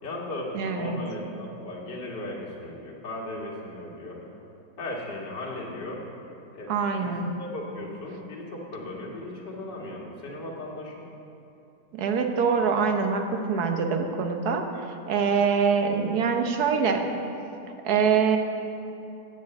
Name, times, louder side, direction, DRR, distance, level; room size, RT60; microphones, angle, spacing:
voice 1, 0.0-4.3 4.8-6.0 6.5-6.7 7.0-11.0, left 1 dB, 80° left, -3 dB, 2.3 m, -36 dB
voice 2, 0.5-1.0 6.7-7.3 11.9-17.0 17.8-18.4, right 6 dB, 65° right, 5 dB, 1.3 m, -24 dB
8.9 x 6.9 x 7.7 m, 2.8 s
omnidirectional pair, 1.8 m